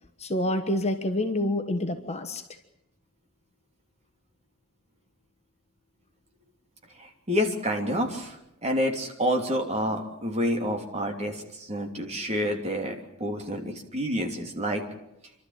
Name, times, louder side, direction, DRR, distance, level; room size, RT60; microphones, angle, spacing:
voice 1, 0.2-2.4, left 1 dB, 30° left, 6 dB, 1.4 m, -27 dB
voice 2, 7.0-8.4 8.6-14.8, equal, 30° right, 3 dB, 3.1 m, -28 dB
28.5 x 12.5 x 8.9 m, 0.84 s
head